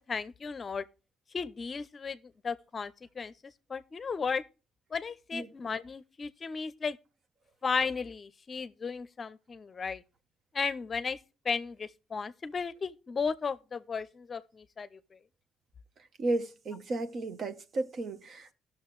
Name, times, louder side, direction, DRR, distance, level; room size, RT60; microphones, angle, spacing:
voice 1, 0.1-0.8 1.3-2.2 2.4-3.3 3.7-4.4 4.9-7.0 7.6-10.0 10.5-11.2 11.4-15.0, left 5 dB, 40° left, 0.6 m, -34 dB
voice 2, 16.2-18.5, right 2 dB, 55° right, 1.1 m, -33 dB
17.0 x 6.4 x 3.1 m
cardioid pair, 90°, 0 cm